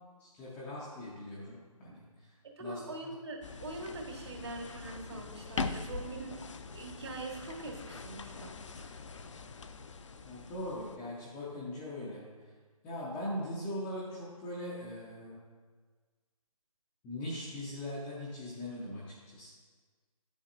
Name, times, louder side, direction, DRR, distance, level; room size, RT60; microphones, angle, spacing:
voice 1, 0.2-2.3 2.6-2.8 10.2-12.2 12.8-15.4 17.0-19.5, left 1 dB, 5° left, -8 dB, 0.5 m, -40 dB
voice 2, 2.6-6.4 6.7-9.0, right 2 dB, 45° right, 2 dB, 1.4 m, -43 dB
sound 1, 3.4-11.0, left 4 dB, 55° left, 0.5 m, -42 dB
9.7 x 7.2 x 2.5 m, 1.5 s
figure-of-eight pair, 150°, 19 cm